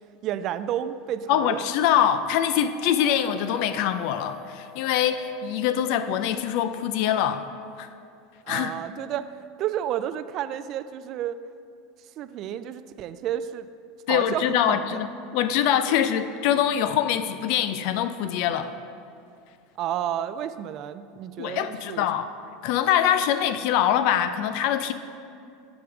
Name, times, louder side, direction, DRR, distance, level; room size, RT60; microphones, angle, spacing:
voice 1, 0.2-1.6 8.5-9.3 9.6-11.4 12.2-13.7 14.1-15.0 15.9-16.0 19.8-22.1, right 11 dB, 50° right, 13 dB, 0.3 m, -31 dB
voice 2, 1.3-7.4 7.8-7.9 8.5-8.8 14.1-18.7 21.4-22.3 22.6-24.9, left 10 dB, 60° left, 11 dB, 0.4 m, -24 dB
sound 1, 2.5-6.8, left 8 dB, 25° left, 1.5 m, -45 dB
7.3 x 6.1 x 4.8 m, 2.4 s
hypercardioid pair, 95°, 0 cm